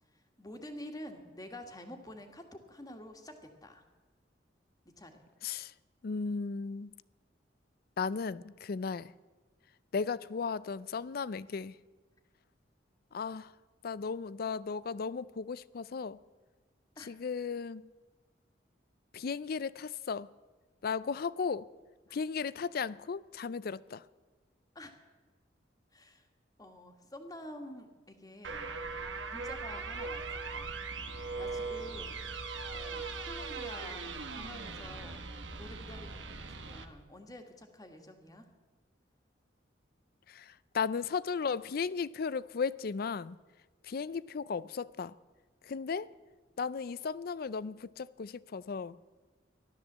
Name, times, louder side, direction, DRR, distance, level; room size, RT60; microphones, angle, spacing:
voice 1, 0.1-3.8 5.0-5.2 17.0-17.1 22.1-22.2 24.7-24.9 25.9-26.3 26.6-28.7 29.3-30.7 31.4-32.2 32.7-34.1 34.4-35.3 35.6-38.5, left 1 dB, 20° left, 1.6 m, -48 dB
voice 2, 5.4-5.7 6.0-6.9 8.0-9.1 9.9-11.8 13.1-13.5 13.8-16.2 17.1-17.8 19.1-20.3 20.8-21.7 22.1-24.0 40.3-43.4 43.8-45.1 45.6-46.1 46.6-49.0, left 5 dB, 55° left, 0.4 m, -35 dB
sound 1, 28.4-36.9, right 4 dB, 85° right, 1.3 m, -40 dB
15.0 x 12.5 x 7.3 m
head